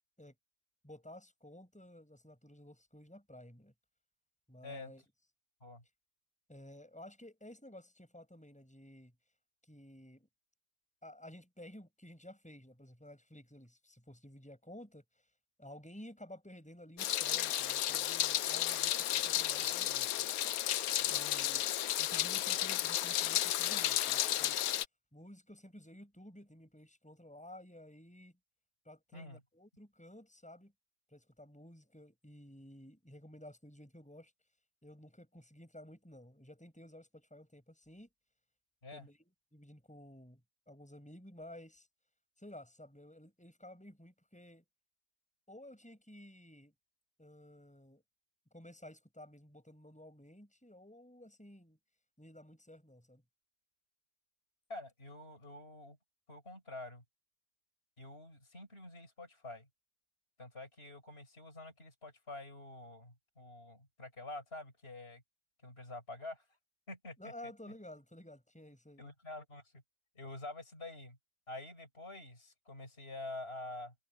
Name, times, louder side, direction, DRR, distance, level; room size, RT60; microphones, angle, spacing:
voice 1, 0.8-3.7 4.5-5.0 6.5-9.1 9.6-10.3 11.0-15.0 15.6-20.3 21.1-21.7 22.0-24.6 25.1-28.4 28.8-30.7 31.1-34.3 34.8-38.1 38.9-40.4 40.7-41.9 42.4-44.6 45.5-46.7 47.2-48.0 48.5-51.8 52.2-53.2 67.2-69.1, left 1 dB, 5° left, 6.8 m, -53 dB
Meow, 17.0-24.8, left 13 dB, 65° left, 1.0 m, -33 dB
voice 2, 21.0-21.3 29.1-29.4 38.8-39.1 54.7-56.0 56.3-57.0 58.0-59.7 60.4-65.2 65.6-66.5 66.9-67.2 69.0-69.8 70.1-71.2 71.5-73.9, left 2 dB, 35° left, 6.4 m, -47 dB
omnidirectional pair, 1.8 m